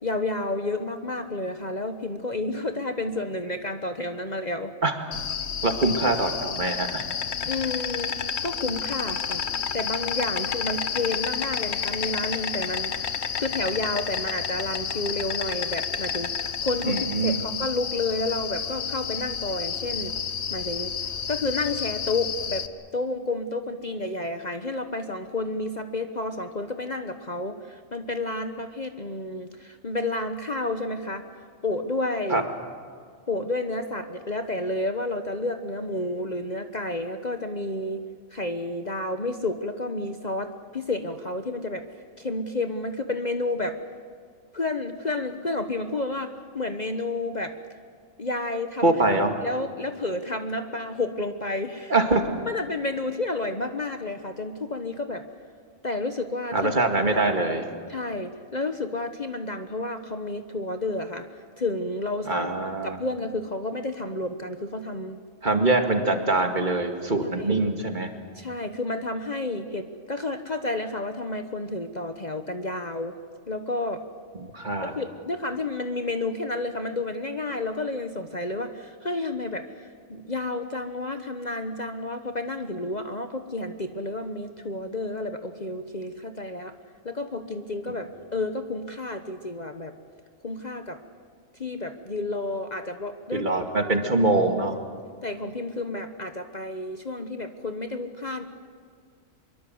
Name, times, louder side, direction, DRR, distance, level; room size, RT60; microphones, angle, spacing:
voice 1, 0.0-4.7 7.5-8.1 8.4-9.4 9.7-20.1 20.5-20.9 21.3-22.7 22.9-31.2 31.6-32.4 33.3-38.0 38.3-41.8 42.2-43.8 44.5-47.5 48.2-49.0 49.4-51.9 52.4-55.2 55.8-56.7 57.1-57.3 57.9-61.3 61.6-62.5 62.8-65.2 67.2-67.6 68.3-73.2 73.5-74.0 74.8-86.7 87.0-89.9 90.4-91.0 91.5-93.5 93.9-94.0 95.2-98.4, left 2 dB, 35° left, 7 dB, 1.2 m, -30 dB
Insect, 5.1-22.7, left 7 dB, 60° left, 1.2 m, -30 dB
voice 2, 5.6-7.0 16.9-17.4 32.3-32.4 48.8-49.3 51.9-52.2 56.5-57.6 62.3-63.0 65.4-68.1 74.5-74.9 93.3-94.8, right 2 dB, 35° right, 5 dB, 2.3 m, -23 dB
24.5 x 23.0 x 7.9 m, 2.1 s
omnidirectional pair, 1.3 m